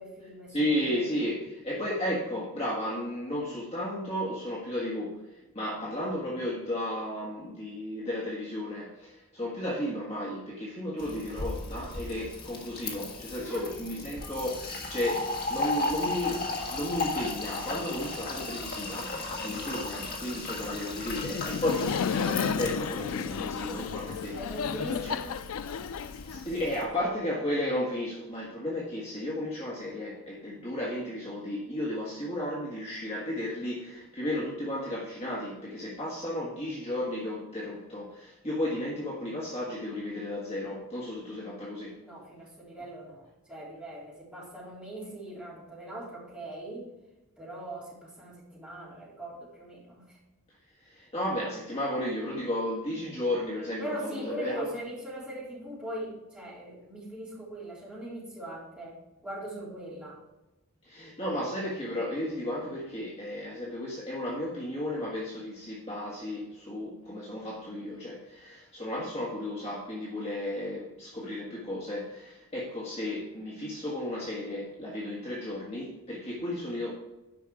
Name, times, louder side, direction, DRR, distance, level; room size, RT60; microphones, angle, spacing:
voice 1, 0.0-1.1 13.4-13.8 24.4-25.4 42.0-46.9 47.4-50.2 53.8-60.2, right 1 dB, 5° right, 3.6 m, -40 dB
voice 2, 0.5-24.4 24.7-25.2 26.3-42.0 50.8-54.7 60.8-76.9, left 1 dB, 30° left, 1.5 m, -34 dB
Fill (with liquid), 11.0-26.8, left 3 dB, 45° left, 1.6 m, -36 dB
Laughter, 21.1-26.9, left 6 dB, 80° left, 0.4 m, -32 dB
10.0 x 5.6 x 4.8 m
head